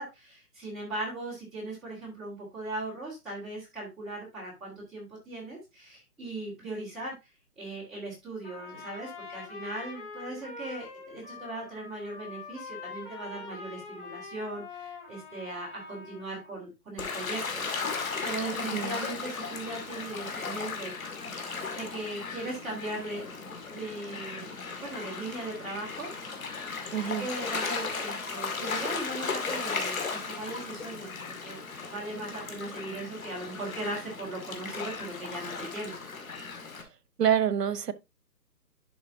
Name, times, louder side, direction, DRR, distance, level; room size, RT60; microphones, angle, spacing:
voice 1, 0.0-7.1 7.6-21.2 21.7-24.5 24.8-26.4 27.0-31.6 31.9-35.9, right 2 dB, ahead, 2.3 m, -39 dB
Trumpet, 8.4-16.5, left 4 dB, 30° left, 2.5 m, -44 dB
Gull seagull / Waves surf, 17.0-36.8, left 4 dB, 55° left, 2.2 m, -36 dB
voice 2, 26.9-27.3 37.2-37.9, right 9 dB, 80° right, 1.0 m, -26 dB
11.0 x 5.1 x 2.7 m
hypercardioid pair, 175°, 48 cm